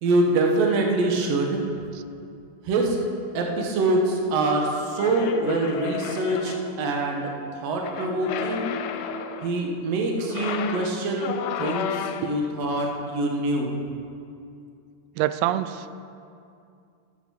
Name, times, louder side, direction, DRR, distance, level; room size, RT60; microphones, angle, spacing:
voice 1, 0.0-1.6 2.6-3.0 3.3-8.7 9.4-11.3 11.6-13.8, right 2 dB, 65° right, 1 dB, 1.6 m, -24 dB
sound 1, 5.0-6.8 7.8-9.6 10.2-12.5, left 6 dB, 90° left, 2.8 m, -32 dB
voice 2, 15.2-15.9, right 13 dB, 90° right, 13 dB, 2.7 m, -25 dB
12.0 x 8.3 x 7.0 m, 2.4 s
omnidirectional pair, 4.8 m